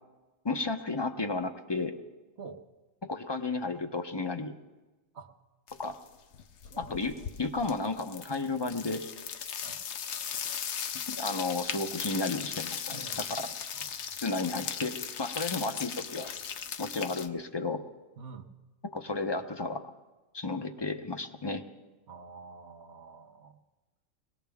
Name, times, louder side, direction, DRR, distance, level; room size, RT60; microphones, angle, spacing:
voice 1, 0.4-1.9 3.0-4.5 5.8-5.9 6.8-9.0 11.1-13.5 14.2-16.3 16.8-17.8 18.9-19.9 20.3-21.6, left 3 dB, 25° left, 6 dB, 0.7 m, -33 dB
sound 1, 5.7-6.1 6.3-17.3, left 8 dB, 65° left, 1.0 m, -38 dB
voice 2, 12.9-13.3 13.7-14.0 18.2-18.5 22.1-23.5, right 5 dB, 60° right, 5 dB, 1.1 m, -47 dB
21.0 x 18.0 x 3.5 m, 1.2 s
omnidirectional pair, 1.4 m